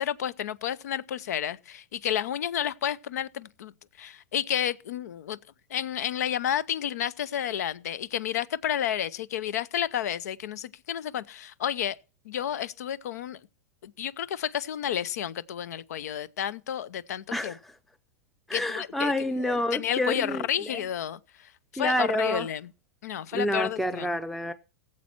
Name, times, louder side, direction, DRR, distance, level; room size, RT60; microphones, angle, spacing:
voice 1, 0.0-3.7 4.0-5.4 5.7-12.0 12.2-13.4 13.8-17.5 18.5-19.1 19.4-22.7 23.0-24.2, left 10 dB, 80° left, 0.6 m, -31 dB
voice 2, 17.3-17.7 18.5-20.7 21.8-22.5 23.3-24.5, left 1 dB, ahead, 0.5 m, -28 dB
17.0 x 7.4 x 4.4 m
hypercardioid pair, 125°, 9 cm